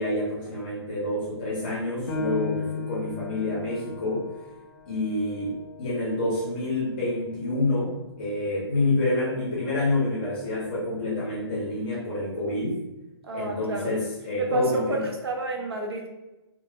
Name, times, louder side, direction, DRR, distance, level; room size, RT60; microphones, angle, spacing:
voice 1, 0.0-4.3 4.9-12.7 13.3-15.0, left 2 dB, 20° left, -7 dB, 0.6 m, -28 dB
Piano, 2.1-7.2 7.7-7.8 8.4-8.9, left 3 dB, 65° left, 0.5 m, -36 dB
voice 2, 13.2-14.0 14.4-16.1, right 2 dB, 65° right, 1 dB, 0.5 m, -30 dB
2.0 x 2.0 x 3.2 m, 1.0 s
hypercardioid pair, 175°, 14 cm